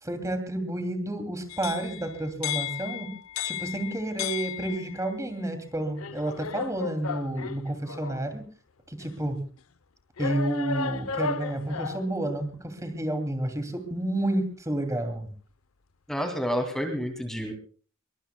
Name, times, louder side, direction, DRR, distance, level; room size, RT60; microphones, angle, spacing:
voice 1, 0.0-3.1 3.4-8.4 8.9-9.5 10.2-15.3, right 1 dB, 15° right, 7 dB, 2.6 m, -30 dB
sound 1, 1.5-5.1 6.0-8.3 9.0-9.1 10.2-12.1, left 6 dB, 85° left, 0.7 m, -34 dB
voice 2, 16.1-17.5, equal, ahead, 4 dB, 2.4 m, -29 dB
23.0 x 23.0 x 2.2 m, 0.38 s
head